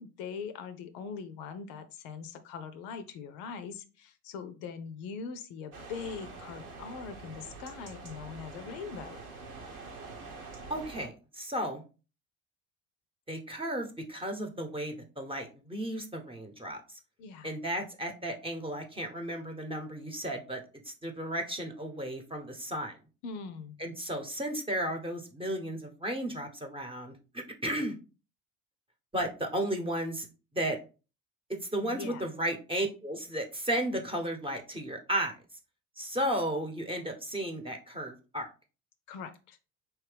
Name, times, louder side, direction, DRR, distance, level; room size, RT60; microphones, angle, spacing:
voice 1, 0.0-9.2 17.2-17.5 23.2-23.8 31.8-32.2 39.1-39.6, left 5 dB, 60° left, 10 dB, 0.6 m, -42 dB
sound 1, 5.7-11.1, right 3 dB, 80° right, 1.2 m, -45 dB
voice 2, 10.7-11.8 13.3-16.8 17.4-23.0 23.8-27.9 29.1-30.3 30.5-30.8 31.5-35.4 36.0-38.5, right 1 dB, 10° right, 3 dB, 1.0 m, -34 dB
4.5 x 3.1 x 3.3 m, 0.33 s
hypercardioid pair, 60°, 43 cm